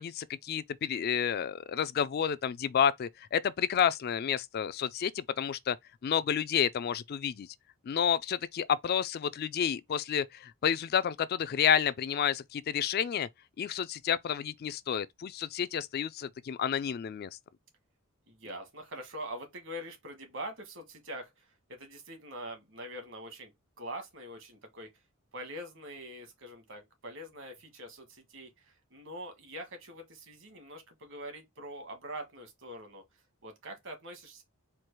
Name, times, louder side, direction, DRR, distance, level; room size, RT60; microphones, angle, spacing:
voice 1, 0.0-5.8 6.0-7.5 7.9-13.3 13.6-17.3, left 8 dB, 45° left, 0.3 m, -30 dB
voice 2, 18.3-23.5 23.8-24.9 25.3-33.0 33.4-34.4, right 1 dB, 65° right, 1.5 m, -44 dB
4.5 x 2.4 x 4.6 m
head